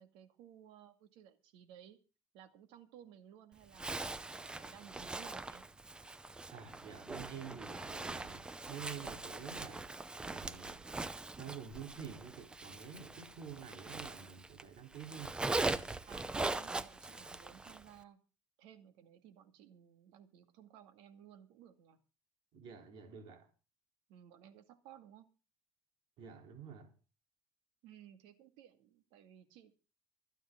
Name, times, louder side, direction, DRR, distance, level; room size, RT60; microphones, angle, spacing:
voice 1, 0.0-2.0 2.3-5.6 16.1-18.2 18.6-22.0 24.1-25.3 27.8-29.7, right 10 dB, 75° right, 2.1 m, -58 dB
Zipper (clothing), 3.7-14.6 14.9-17.9, right 2 dB, 10° right, 0.6 m, -41 dB
voice 2, 6.5-9.9 10.2-10.9 11.4-15.4 22.5-23.5 26.2-26.9, right 7 dB, 55° right, 3.7 m, -49 dB
25.0 x 9.1 x 3.8 m
cardioid pair, 165°, 9 cm